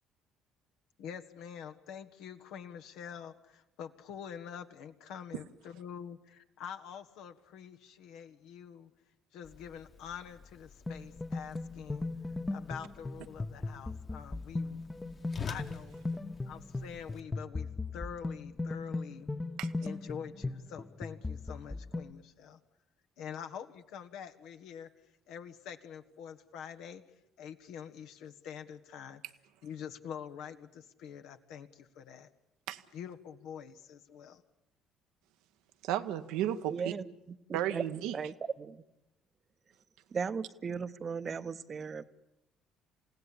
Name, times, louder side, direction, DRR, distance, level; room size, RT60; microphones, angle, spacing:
voice 1, 1.0-8.9 9.3-12.1 12.5-14.8 15.4-16.0 16.5-19.3 19.8-22.6 23.2-24.9 25.3-27.0 27.4-29.2 29.6-32.3 32.9-34.4, left 8 dB, 65° left, 1.3 m, -46 dB
Whoosh swoosh swish, 9.4-17.2, left 6 dB, 40° left, 1.9 m, -48 dB
sound 1, 10.9-22.1, left 3 dB, 15° left, 1.1 m, -38 dB
voice 2, 35.8-36.9 37.5-38.2, right 12 dB, 70° right, 1.0 m, -33 dB
voice 3, 36.7-37.8 38.1-38.8 40.1-42.0, right 6 dB, 40° right, 1.0 m, -37 dB
28.5 x 16.5 x 8.6 m
figure-of-eight pair, 50°, 0 cm